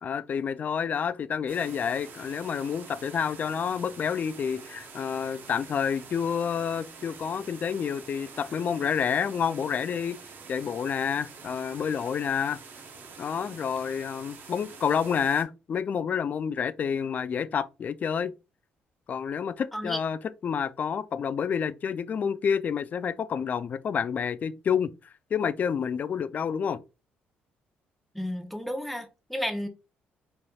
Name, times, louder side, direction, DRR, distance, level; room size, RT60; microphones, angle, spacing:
voice 1, 0.0-10.2 10.5-12.6 13.2-18.3 19.1-24.9 25.3-26.8, left 7 dB, 45° left, 0.3 m, -29 dB
sound 1, 1.5-15.4, right 5 dB, 60° right, 0.8 m, -47 dB
voice 2, 28.1-29.7, equal, ahead, 0.7 m, -32 dB
4.1 x 3.2 x 2.3 m
cardioid pair, 100°, 4 cm